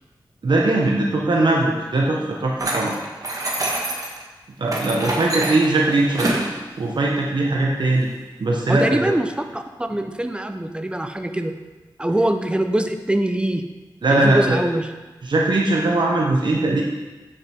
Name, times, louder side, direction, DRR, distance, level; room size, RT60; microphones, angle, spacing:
voice 1, 0.4-2.9 4.6-6.3 6.8-8.1 8.4-9.1 14.0-14.6 15.2-16.8, right 2 dB, 65° right, -2 dB, 1.1 m, -20 dB
sound 1, 2.6-4.2 4.7-6.5, right 1 dB, 45° right, 1.6 m, -26 dB
voice 2, 8.7-11.5 12.0-13.6 14.1-14.9, right 1 dB, 10° right, 7 dB, 0.8 m, -23 dB
8.2 x 6.5 x 4.5 m, 1.2 s
cardioid pair, 55°, 8 cm